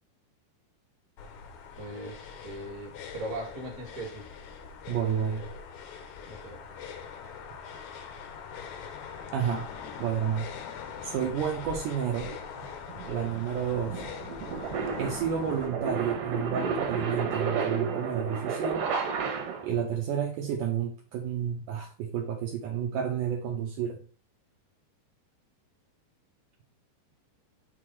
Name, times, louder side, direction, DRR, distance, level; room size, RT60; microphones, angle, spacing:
sound 1, 1.2-15.7, left 6 dB, 80° left, 1.7 m, -42 dB
voice 1, 1.8-4.3 6.2-6.6 11.2-11.3 12.9-13.3, right 1 dB, 35° right, -1 dB, 1.2 m, -39 dB
voice 2, 4.9-5.5 9.3-9.7 10.0-10.5 11.0-12.3 13.1-14.0 15.0-18.9 19.6-24.0, right 8 dB, 90° right, 1 dB, 1.8 m, -30 dB
sound 2, 12.2-19.8, right 5 dB, 65° right, 2.3 m, -32 dB
6.7 x 3.8 x 4.5 m, 0.39 s
omnidirectional pair, 4.7 m